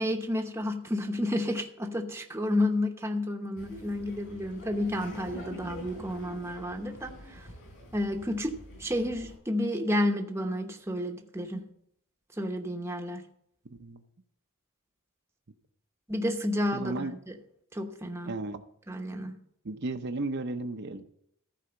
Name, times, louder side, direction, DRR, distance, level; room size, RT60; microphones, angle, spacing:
voice 1, 0.0-7.5 7.9-11.7 12.4-13.2 16.1-17.3 17.7-18.3 18.9-19.4, left 1 dB, 10° right, 3 dB, 0.9 m, -31 dB
Laughter, 3.6-9.4, left 1 dB, 60° left, 4.4 m, -46 dB
voice 2, 13.7-14.0 16.7-17.1 18.2-18.6 19.6-21.0, right 2 dB, 50° right, 7 dB, 0.7 m, -34 dB
14.5 x 4.9 x 6.9 m, 0.72 s
head